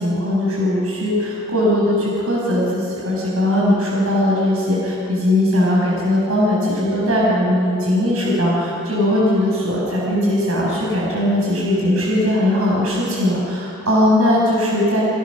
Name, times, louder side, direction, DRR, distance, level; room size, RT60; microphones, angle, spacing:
voice 1, 0.0-15.0, left 1 dB, 75° right, -4 dB, 6.7 m, -19 dB
29.5 x 22.5 x 6.4 m, 2.7 s
head